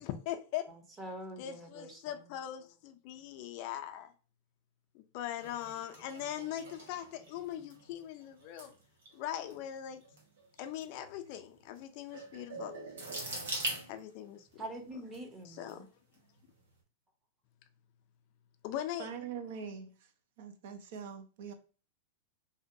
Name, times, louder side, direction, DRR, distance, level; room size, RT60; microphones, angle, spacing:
voice 1, 0.0-0.7 1.4-4.1 4.9-8.7 9.1-10.0 10.6-12.7 13.9-14.7 15.4-15.9 18.6-19.1, left 11 dB, 55° left, 0.4 m, -40 dB
voice 2, 0.7-2.3 14.6-15.9, right 1 dB, 25° right, 0.7 m, -45 dB
sound 1, 5.4-14.5 15.1-15.7 16.1-16.4, right 2 dB, 80° right, 0.9 m, -43 dB
voice 3, 19.0-20.1 20.4-21.5, right 7 dB, 65° right, 0.5 m, -43 dB
2.6 x 2.2 x 2.6 m
hypercardioid pair, 115°, 0 cm